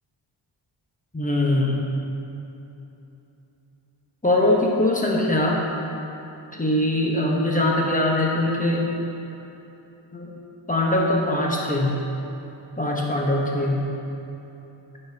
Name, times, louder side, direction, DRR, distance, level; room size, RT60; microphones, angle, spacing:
voice 1, 1.1-1.8 4.2-5.6 6.5-8.8 10.1-10.3 10.7-11.9 12.8-13.9, left 1 dB, 15° left, -2 dB, 1.2 m, -22 dB
10.0 x 5.6 x 3.0 m, 3.0 s
cardioid pair, 70°, 48 cm